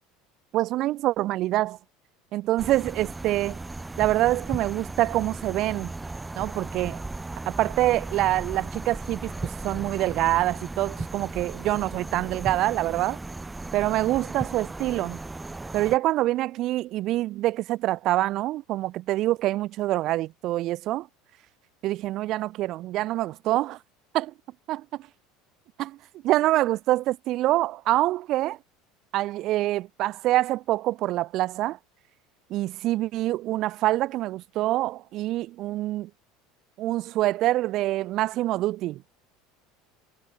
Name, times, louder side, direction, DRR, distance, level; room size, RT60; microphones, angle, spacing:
voice 1, 0.5-1.8 2.3-3.6 4.0-5.9 6.3-7.0 7.5-13.2 13.7-15.2 15.7-21.1 21.8-23.8 24.1-24.3 24.7-25.1 25.8-26.0 26.2-28.6 29.1-31.8 32.5-36.1 36.8-39.0, right 16 dB, 40° right, 3.0 m, -25 dB
sound 1, 2.6-16.0, right 2 dB, 5° right, 6.6 m, -36 dB
cardioid pair, 170°, 0 cm